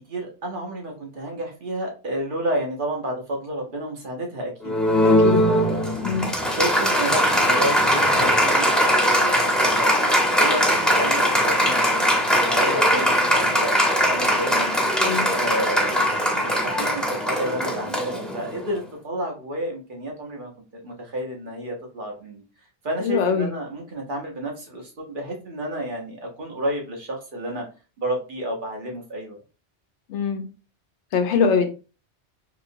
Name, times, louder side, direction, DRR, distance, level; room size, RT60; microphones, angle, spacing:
voice 1, 0.1-5.1 5.4-5.9 6.4-22.4 22.8-27.6 28.0-29.4, right 1 dB, 50° right, 1.0 m, -31 dB
Applause, 4.6-18.7, equal, ahead, 0.8 m, -20 dB
voice 2, 5.0-5.5 6.0-6.3 15.0-15.3 23.0-23.5 30.1-30.4 31.1-31.7, left 5 dB, 85° left, 0.9 m, -23 dB
2.9 x 2.9 x 2.6 m
omnidirectional pair, 1.2 m